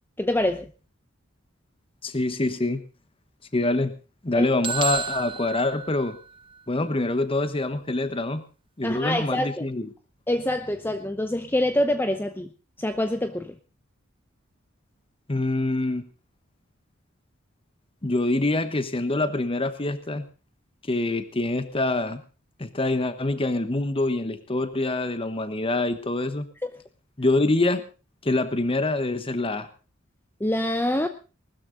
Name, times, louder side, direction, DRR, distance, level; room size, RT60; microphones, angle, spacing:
voice 1, 0.2-0.7 4.4-4.5 8.8-9.7 10.3-12.5 12.8-13.5 26.6-26.7 30.4-31.1, left 1 dB, 10° left, 9 dB, 0.7 m, -25 dB
voice 2, 2.0-2.8 3.5-3.9 4.2-6.2 6.7-8.4 8.8-9.9 15.3-16.0 18.0-20.2 20.9-22.2 22.6-26.5 27.2-27.8 28.2-29.7, left 2 dB, 25° left, 11 dB, 1.1 m, -25 dB
sound 1, 4.6-6.6, right 6 dB, 25° right, 0.8 m, -31 dB
19.5 x 13.0 x 3.9 m, 0.34 s
head